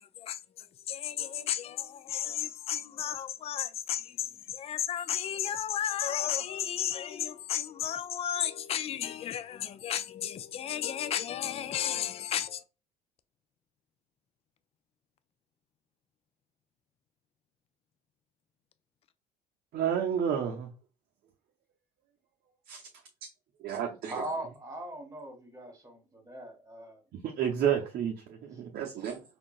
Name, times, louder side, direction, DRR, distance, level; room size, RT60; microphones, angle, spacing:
voice 1, 0.9-12.6, left 10 dB, 35° left, 0.4 m, -33 dB
voice 2, 19.7-20.7 22.7-22.9 23.6-24.2 27.1-29.2, right 8 dB, 55° right, 0.7 m, -31 dB
voice 3, 24.0-27.0, right 1 dB, 15° right, 1.5 m, -40 dB
3.7 x 2.4 x 2.3 m
hypercardioid pair, 65°, 19 cm